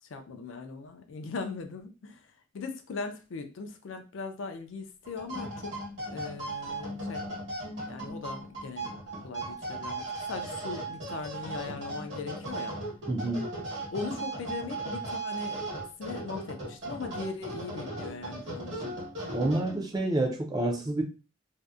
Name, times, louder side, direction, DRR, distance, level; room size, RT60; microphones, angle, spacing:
voice 1, 0.0-5.8 6.1-7.3 7.9-8.9 9.2-12.8 13.9-15.7 16.0-19.0, left 4 dB, 65° left, 0.4 m, -39 dB
sound 1, 5.0-20.0, right 2 dB, 60° right, 1.1 m, -37 dB
voice 2, 13.1-13.5 19.3-21.0, right 2 dB, 20° right, 0.3 m, -28 dB
2.6 x 2.0 x 2.3 m
head